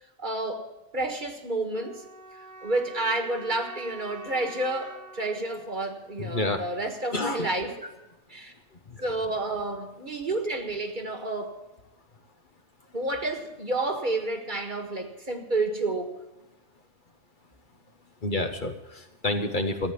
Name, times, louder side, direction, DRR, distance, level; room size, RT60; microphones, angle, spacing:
voice 1, 0.2-0.7 0.9-2.0 2.6-7.9 8.3-8.5 9.0-11.6 12.9-16.1, right 2 dB, 40° right, 4 dB, 1.8 m, -30 dB
sound 1, 1.7-6.7, right 4 dB, 85° right, 1.8 m, -46 dB
voice 2, 6.2-6.6 7.1-7.5 18.2-19.9, left 2 dB, 45° left, 6 dB, 1.1 m, -28 dB
14.5 x 9.2 x 8.2 m, 1.0 s
omnidirectional pair, 1.2 m